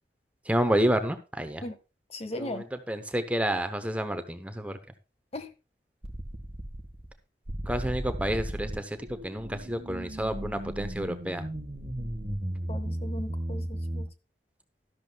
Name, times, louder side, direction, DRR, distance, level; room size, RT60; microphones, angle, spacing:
voice 1, 0.5-1.6 2.4-4.8 7.7-9.0 9.2-11.4, right 1 dB, 10° right, 0.8 m, -29 dB
voice 2, 2.1-2.6 5.3-5.5 12.7-14.1, left 1 dB, 35° left, 0.8 m, -37 dB
sound 1, 6.0-7.1 7.5-14.1, right 1 dB, 30° right, 1.4 m, -35 dB
12.5 x 12.0 x 2.3 m
head